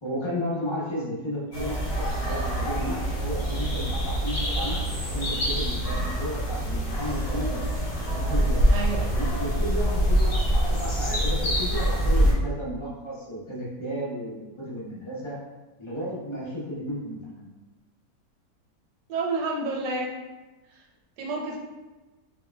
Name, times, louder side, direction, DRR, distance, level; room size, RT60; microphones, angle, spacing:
voice 1, 0.0-7.6 8.1-8.6 9.1-15.4 15.8-17.5, equal, 20° left, -7 dB, 0.8 m, -33 dB
sound 1, 1.5-12.3, equal, 50° left, 1.3 m, -25 dB
voice 2, 8.7-9.1 19.1-20.1 20.7-20.8 21.2-21.6, right 3 dB, 80° right, -2 dB, 1.4 m, -29 dB
4.8 x 3.0 x 2.3 m, 1.1 s
omnidirectional pair, 1.8 m